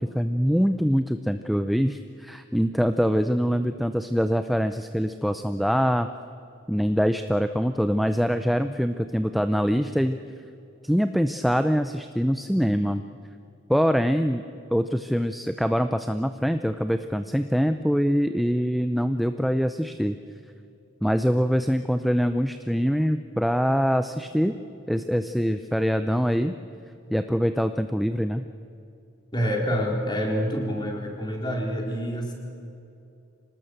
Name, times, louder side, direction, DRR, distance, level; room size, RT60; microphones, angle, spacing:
voice 1, 0.0-6.1 6.7-10.2 10.8-13.0 13.7-14.4 14.7-20.2 21.0-24.5 24.9-26.6 27.1-28.4, equal, ahead, 9 dB, 0.5 m, -24 dB
voice 2, 29.3-32.3, equal, 20° left, 1 dB, 4.2 m, -27 dB
25.5 x 19.0 x 7.9 m, 2.7 s
head